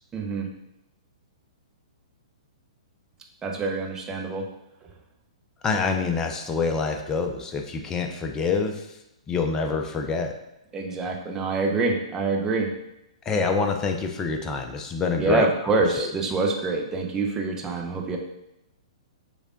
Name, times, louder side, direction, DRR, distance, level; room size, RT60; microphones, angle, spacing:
voice 1, 0.1-0.5 3.4-4.5 10.7-12.7 15.2-18.2, right 3 dB, 15° right, 0 dB, 0.7 m, -26 dB
voice 2, 5.6-8.9 9.3-10.3 13.3-15.5 16.0-16.1, left 4 dB, 20° left, 4 dB, 0.4 m, -26 dB
6.2 x 3.3 x 2.5 m, 0.88 s
hypercardioid pair, 120°, 3 cm